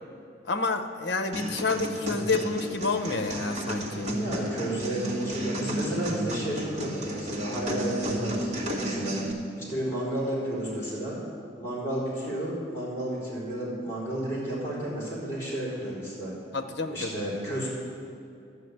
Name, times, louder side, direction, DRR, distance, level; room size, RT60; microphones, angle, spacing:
voice 1, 0.4-4.2 16.5-17.3, left 3 dB, 60° left, 7 dB, 0.8 m, -29 dB
sound 1, 1.3-9.3, right 1 dB, 40° right, 1.6 m, -32 dB
voice 2, 4.2-9.2 9.6-11.2 11.6-16.3 16.9-17.7, right 1 dB, 15° left, -7 dB, 4.1 m, -32 dB
11.5 x 9.0 x 7.9 m, 2.4 s
head